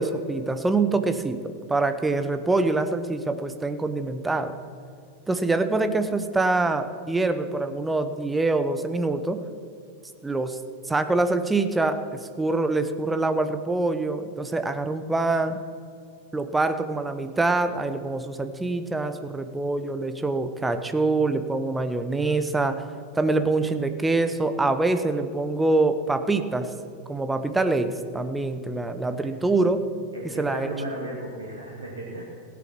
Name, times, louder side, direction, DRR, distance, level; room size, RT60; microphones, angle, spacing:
voice 1, 0.0-4.5 5.3-9.5 10.2-10.6 10.9-15.6 16.3-22.8 23.1-26.7 27.1-29.9 30.4-30.7, right 2 dB, 10° right, 9 dB, 0.9 m, -25 dB
voice 2, 30.1-32.2, right 1 dB, 75° right, -3 dB, 1.9 m, -35 dB
16.0 x 8.5 x 6.2 m, 2.3 s
figure-of-eight pair, 90°, 0 cm